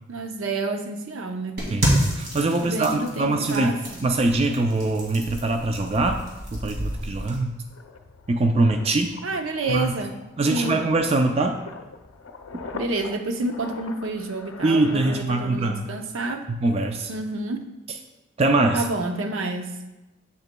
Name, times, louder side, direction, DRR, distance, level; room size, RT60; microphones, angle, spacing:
voice 1, 0.1-1.7 2.6-3.8 9.2-10.2 10.5-10.9 12.7-16.5 17.1-17.6 18.7-19.8, right 2 dB, 80° right, 5 dB, 0.7 m, -29 dB
sound 1, 1.6-7.4, right 1 dB, 50° right, 1.9 m, -29 dB
voice 2, 1.7-3.7 4.0-6.2 6.5-7.6 8.3-9.2 9.7-9.9 10.4-11.6 12.5-12.6 14.6-15.8 16.5-17.1 18.4-18.8, right 2 dB, 30° right, 5 dB, 0.3 m, -23 dB
sound 2, 6.4-6.5 6.8-16.4, left 4 dB, 85° left, 0.5 m, -42 dB
7.8 x 6.9 x 2.2 m, 1.0 s
head